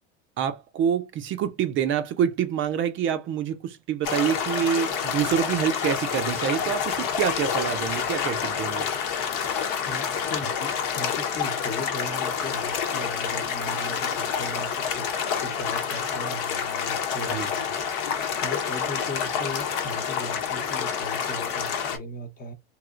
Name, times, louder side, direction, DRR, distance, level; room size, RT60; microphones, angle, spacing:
voice 1, 0.4-8.9 17.3-17.5, right 8 dB, 40° right, 0.5 m, -26 dB
sound 1, 4.0-22.0, left 7 dB, 65° left, 1.0 m, -28 dB
voice 2, 9.5-17.7 18.4-22.5, left 1 dB, 30° left, 0.9 m, -38 dB
3.0 x 2.9 x 2.4 m
hypercardioid pair, 95°, 30 cm